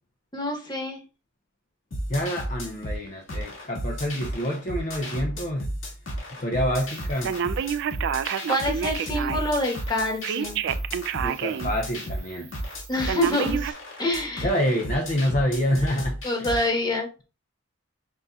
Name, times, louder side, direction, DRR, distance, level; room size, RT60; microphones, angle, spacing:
voice 1, 0.3-1.0 8.5-10.6 12.9-14.5 16.2-17.2, left 1 dB, 20° left, 1.2 m, -27 dB
sound 1, 1.9-16.7, equal, 70° left, 1.9 m, -33 dB
voice 2, 2.1-5.7 6.3-7.4 11.2-12.5 14.4-16.5, equal, 40° left, 0.7 m, -27 dB
Telephone, 7.2-9.6 10.2-11.7 12.1-12.2 13.1-13.7, right 8 dB, 60° right, 0.3 m, -28 dB
5.3 x 4.0 x 2.3 m
head